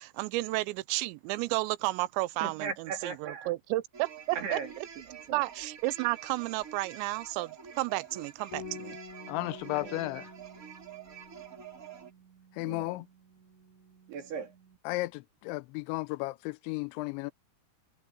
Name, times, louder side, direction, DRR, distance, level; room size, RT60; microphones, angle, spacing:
voice 1, 0.0-4.6 5.3-9.0, right 20 dB, 90° right, 2.9 m, -32 dB
voice 2, 2.4-3.5 4.3-5.4 9.7-10.1 12.6-13.0 14.1-14.5, right 5 dB, 65° right, 5.1 m, -39 dB
sound 1, 3.9-12.1, right 8 dB, 30° right, 1.6 m, -48 dB
Bass guitar, 8.5-14.8, left 3 dB, 55° left, 4.6 m, -49 dB
voice 3, 9.3-10.3 12.6-13.1 14.9-17.3, left 22 dB, 90° left, 2.9 m, -34 dB
omnidirectional pair, 5.1 m